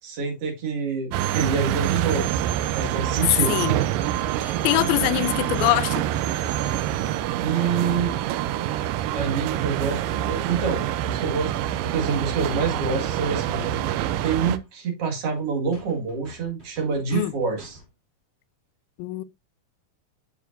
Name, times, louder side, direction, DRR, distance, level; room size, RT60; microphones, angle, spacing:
voice 1, 0.0-2.5 2.8-3.6 7.4-8.2 9.1-17.8, right 5 dB, 45° right, 2.2 m, -27 dB
sound 1, 1.1-14.6, right 12 dB, 85° right, 2.0 m, -26 dB
sound 2, 4.5-10.9 14.2-14.3 14.6-14.7 15.0-15.1 15.4-15.5 15.7-17.9, right 1 dB, 20° right, 2.6 m, -48 dB
voice 2, 4.6-6.0 17.1-17.3 19.0-19.2, left 18 dB, 80° left, 2.2 m, -23 dB
9.0 x 6.4 x 2.5 m
omnidirectional pair, 4.5 m